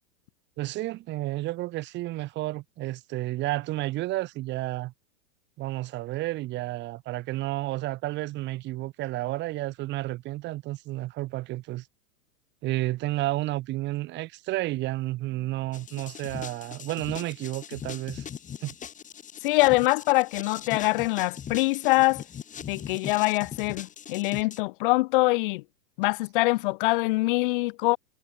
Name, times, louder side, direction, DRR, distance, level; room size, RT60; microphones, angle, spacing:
voice 1, 0.6-4.9 5.6-11.9 12.6-18.2 18.6-18.7, right 17 dB, 25° right, 1.2 m, -31 dB
sound 1, 15.7-24.6, left 8 dB, 20° left, 4.7 m, -40 dB
voice 2, 19.4-22.2 22.7-25.6 26.0-28.0, left 23 dB, 45° left, 0.5 m, -24 dB
supercardioid pair, 145°, 40 cm